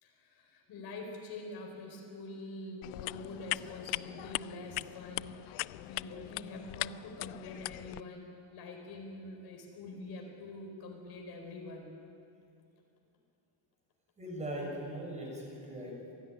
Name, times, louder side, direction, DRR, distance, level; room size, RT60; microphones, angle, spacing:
voice 1, 0.0-5.4 5.8-11.9, left 2 dB, 50° left, 2 dB, 4.6 m, -45 dB
sound 1, 2.8-8.0, left 22 dB, 85° left, 0.6 m, -40 dB
voice 2, 14.2-16.1, right 1 dB, 15° right, -2 dB, 6.5 m, -40 dB
26.5 x 16.5 x 9.9 m, 2.6 s
cardioid pair, 170°, 49 cm